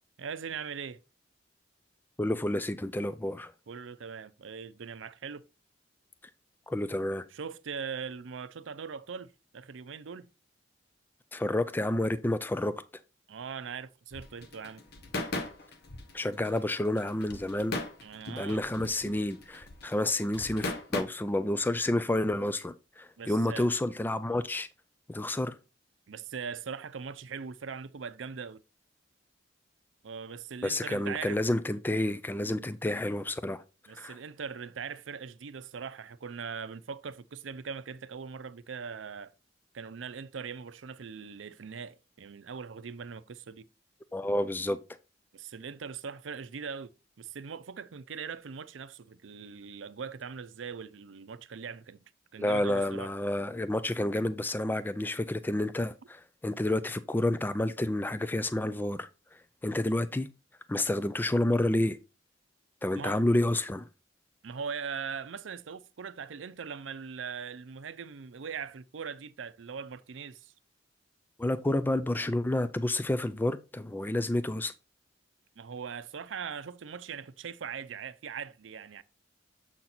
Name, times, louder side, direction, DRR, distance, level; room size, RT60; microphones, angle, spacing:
voice 1, 0.2-1.0 3.7-5.4 7.3-10.3 13.3-14.8 18.0-18.6 23.2-23.7 26.1-28.6 30.0-31.4 33.9-39.3 39.7-43.6 45.3-46.9 47.2-52.0 52.3-53.1 62.9-63.2 64.4-70.5 75.6-79.0, right 6 dB, 85° right, 0.5 m, -40 dB
voice 2, 2.2-3.5 6.7-7.3 11.3-12.7 16.1-17.8 18.3-24.7 25.1-25.6 30.6-33.6 33.9-34.2 44.1-44.8 52.4-60.3 60.7-62.0 62.8-63.9 71.4-74.7, left 1 dB, 10° left, 0.3 m, -30 dB
sound 1, 14.1-21.0, left 2 dB, 60° left, 1.0 m, -38 dB
7.3 x 4.4 x 4.0 m
head